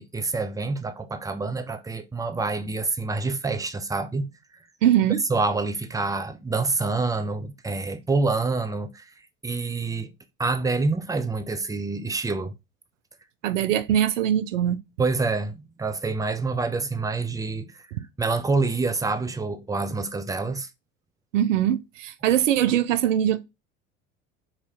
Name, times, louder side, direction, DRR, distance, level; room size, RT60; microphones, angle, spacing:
voice 1, 0.0-4.6 5.3-9.1 9.4-10.1 10.4-12.5 15.0-17.8 18.2-20.7, right 3 dB, 10° right, 0.6 m, -27 dB
voice 2, 4.8-5.2 13.4-14.8 21.3-23.4, right 11 dB, 75° right, 0.6 m, -22 dB
4.7 x 2.8 x 3.4 m
hypercardioid pair, 70°, 38 cm